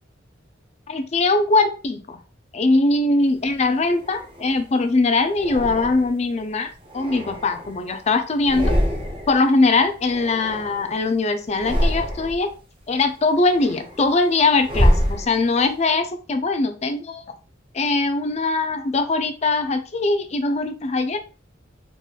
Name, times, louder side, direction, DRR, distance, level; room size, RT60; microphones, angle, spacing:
voice 1, 0.9-2.2 2.5-8.7 9.3-12.5 12.9-17.3 17.7-21.2, left 3 dB, 35° left, 0.4 m, -21 dB
sound 1, 3.4-4.7 5.3-6.3 6.7-8.0 8.3-9.4 9.7-11.1 11.5-12.5 13.0-15.7, equal, 25° right, 0.8 m, -25 dB
3.8 x 3.0 x 2.3 m
head